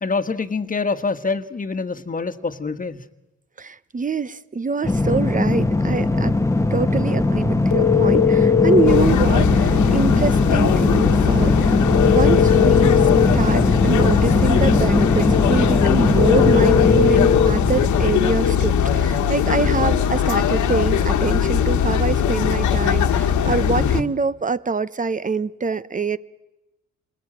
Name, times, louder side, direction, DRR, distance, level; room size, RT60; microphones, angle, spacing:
voice 1, 0.0-3.0 23.8-24.1, left 4 dB, 25° left, 10 dB, 1.6 m, -26 dB
voice 2, 3.6-6.3 6.7-11.7 12.1-13.0 13.3-26.2, right 4 dB, 25° right, 16 dB, 1.0 m, -25 dB
sound 1, 4.8-19.2, left 2 dB, 10° left, 1.3 m, -20 dB
sound 2, 7.7-9.1 11.9-13.4 16.2-17.6, left 8 dB, 45° left, 1.2 m, -18 dB
sound 3, 8.9-24.0, left 8 dB, 75° left, 1.6 m, -20 dB
28.0 x 21.0 x 9.1 m, 1.0 s
cardioid pair, 90°, 30 cm